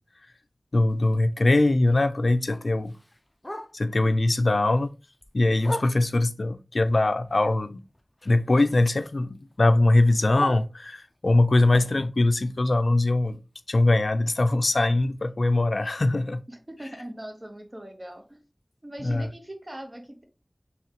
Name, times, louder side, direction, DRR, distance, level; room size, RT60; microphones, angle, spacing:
voice 1, 0.7-2.9 3.7-4.9 5.3-7.8 8.2-13.4 13.7-16.4 19.0-19.3, left 2 dB, 85° left, 0.4 m, -22 dB
Bark, 0.9-4.1 4.5-6.4 6.9-8.7 9.0-11.3 11.7-15.6 16.0-16.1 16.4-16.8 17.2-17.3 17.6-17.7 18.2-18.3, left 1 dB, 30° left, 0.6 m, -42 dB
voice 2, 16.5-18.4 18.8-20.2, right 1 dB, 35° right, 1.2 m, -40 dB
4.7 x 3.2 x 2.9 m
wide cardioid pair, 40°, 0 cm